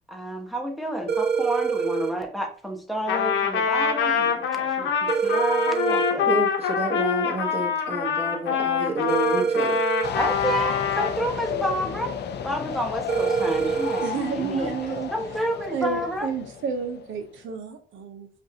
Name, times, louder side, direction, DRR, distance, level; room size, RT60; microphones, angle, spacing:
voice 1, 0.1-6.4 10.1-12.1 12.4-16.3, equal, ahead, 0.9 m, -30 dB
sound 1, 1.1-2.1 5.1-6.1 9.1-10.1 13.1-14.1, right 6 dB, 55° right, 1.0 m, -25 dB
Trumpet, 3.1-11.2, left 7 dB, 75° left, 1.0 m, -25 dB
voice 2, 6.3-9.8, right 2 dB, 30° right, 1.4 m, -29 dB
sound 2, 10.0-17.4, left 7 dB, 60° left, 0.5 m, -33 dB
voice 3, 14.0-15.1 15.7-18.3, right 5 dB, 80° right, 0.8 m, -30 dB
5.2 x 2.6 x 2.8 m
cardioid pair, 90°, 20 cm